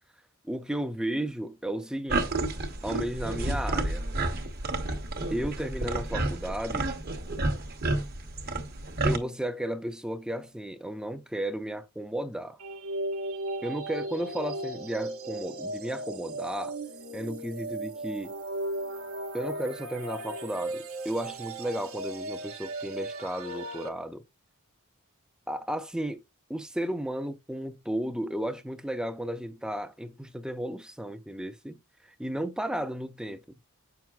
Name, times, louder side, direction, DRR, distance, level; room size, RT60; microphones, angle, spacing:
voice 1, 0.4-2.4 2.8-4.0 5.3-6.9 9.0-12.6 13.6-16.7 17.1-18.3 19.3-24.2 25.5-26.2 26.5-31.8 32.2-33.4, right 1 dB, 5° right, 0.4 m, -34 dB
sound 1, 2.1-9.2, right 2 dB, 45° right, 1.0 m, -30 dB
sound 2, 12.6-23.9, right 1 dB, 70° right, 0.9 m, -36 dB
7.8 x 5.9 x 2.4 m
head